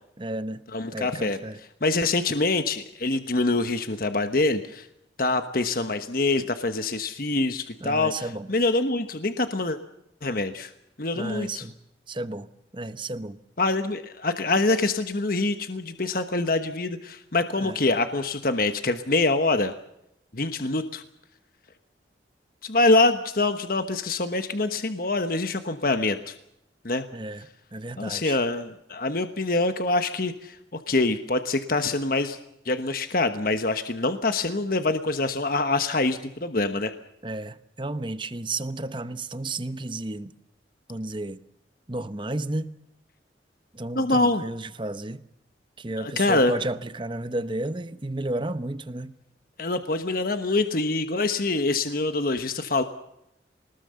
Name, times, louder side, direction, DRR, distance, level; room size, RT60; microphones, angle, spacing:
voice 1, 0.2-0.6 0.9-1.6 7.8-8.5 11.1-11.8 12.1-12.5 12.7-13.4 17.6-17.8 27.1-28.4 37.2-40.3 40.9-41.4 41.9-42.8 43.7-45.2 45.8-49.2, right 2 dB, 25° right, 1.0 m, -32 dB
voice 2, 0.7-1.4 1.8-4.9 5.2-9.8 10.2-10.7 11.0-11.6 13.6-19.7 20.3-21.0 22.6-26.3 26.8-27.0 28.0-30.6 30.9-32.4 32.6-36.9 43.9-44.4 46.0-46.5 49.6-52.8, left 2 dB, 50° left, 1.2 m, -25 dB
24.5 x 19.5 x 6.9 m
head